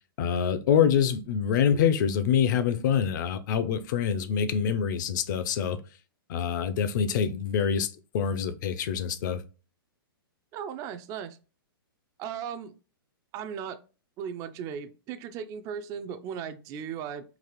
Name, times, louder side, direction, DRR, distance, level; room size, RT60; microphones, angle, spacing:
voice 1, 0.2-5.8 6.3-9.4, left 8 dB, 55° left, 0.5 m, -25 dB
voice 2, 10.5-11.4 12.2-12.7 13.3-13.8 14.2-17.2, right 8 dB, 25° right, 0.3 m, -36 dB
4.0 x 2.5 x 2.9 m
hypercardioid pair, 130°, 12 cm